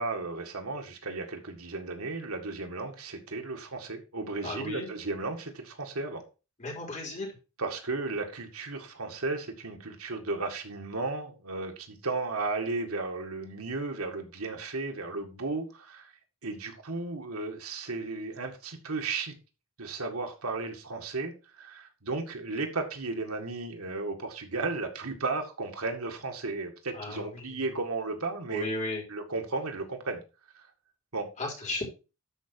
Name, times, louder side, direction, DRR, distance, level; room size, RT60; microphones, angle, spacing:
voice 1, 0.0-6.2 7.6-16.1 16.4-19.3 19.8-28.7 29.1-30.2 30.5-30.7 31.1-31.3, right 3 dB, 80° right, 4 dB, 2.0 m, -34 dB
voice 2, 4.4-4.9 6.6-7.3 26.9-27.6 28.5-29.0 31.4-31.8, left 2 dB, 35° left, -2 dB, 4.1 m, -35 dB
12.0 x 4.9 x 4.6 m, 0.31 s
head